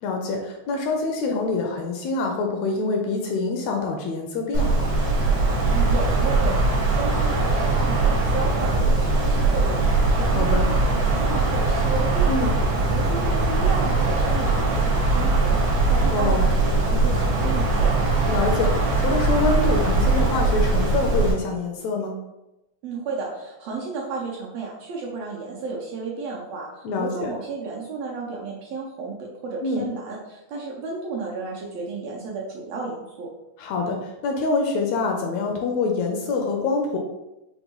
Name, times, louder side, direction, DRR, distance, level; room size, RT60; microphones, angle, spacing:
voice 1, 0.0-4.9 10.3-10.7 12.3-12.6 16.1-16.5 18.3-22.1 26.8-27.3 29.6-29.8 33.6-37.0, left 3 dB, 80° left, 2 dB, 1.7 m, -25 dB
Wind, 4.5-21.3, right 3 dB, 60° right, 1.3 m, -21 dB
voice 2, 5.7-12.5 12.9-17.9 22.8-33.3, right 4 dB, 75° right, -3 dB, 1.6 m, -33 dB
5.2 x 2.1 x 2.9 m, 0.95 s
omnidirectional pair, 3.3 m